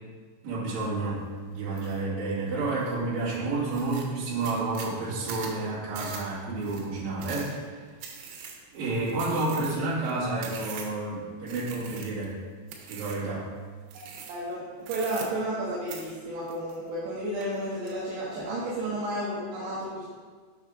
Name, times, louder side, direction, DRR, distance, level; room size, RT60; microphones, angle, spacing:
voice 1, 0.4-7.8 8.7-12.4 12.8-13.5 18.3-18.5, right 2 dB, 50° right, -10 dB, 3.7 m, -30 dB
sound 1, 1.8-2.0 2.5-3.0 3.3-3.4 3.7-11.1 11.5-12.3 12.7-13.3 13.9-14.5 14.8-15.6 15.9-17.1 17.4-17.9, right 7 dB, 85° right, 3.7 m, -42 dB
voice 2, 14.3-20.1, right 1 dB, 70° right, -8 dB, 3.3 m, -32 dB
8.6 x 6.3 x 3.6 m, 1.5 s
omnidirectional pair, 5.8 m